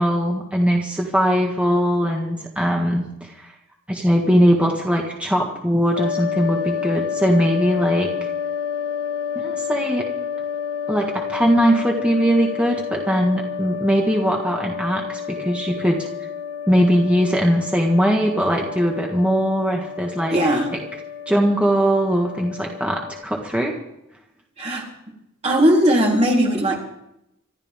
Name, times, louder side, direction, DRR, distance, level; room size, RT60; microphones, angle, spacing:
voice 1, 0.0-3.5 3.9-8.3 9.4-10.0 10.9-16.1 16.7-20.4 21.3-23.8, equal, 5° right, -1 dB, 1.8 m, -20 dB
sound 1, 6.0-23.2, left 8 dB, 70° left, 1.3 m, -30 dB
voice 2, 20.3-20.7 24.6-24.9 25.4-26.8, equal, 30° right, -2 dB, 3.8 m, -18 dB
27.0 x 12.5 x 3.7 m, 0.82 s
head